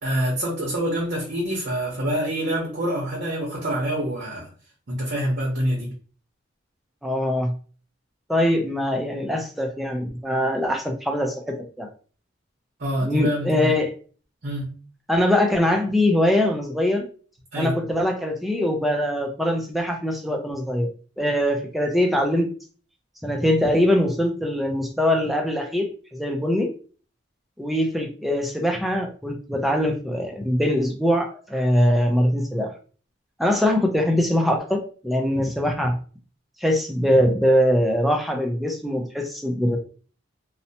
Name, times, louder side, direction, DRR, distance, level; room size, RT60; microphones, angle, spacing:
voice 1, 0.0-4.5 4.9-5.9 12.8-13.7 14.4-14.7 17.5-17.7, equal, 55° right, -3 dB, 0.8 m, -26 dB
voice 2, 7.0-7.5 8.3-11.9 13.0-13.9 15.1-17.1 17.6-20.9 21.2-22.5 23.2-26.7 27.6-32.7 33.4-36.0 36.6-39.8, left 1 dB, ahead, 2 dB, 0.4 m, -22 dB
2.7 x 2.1 x 2.7 m, 0.40 s
head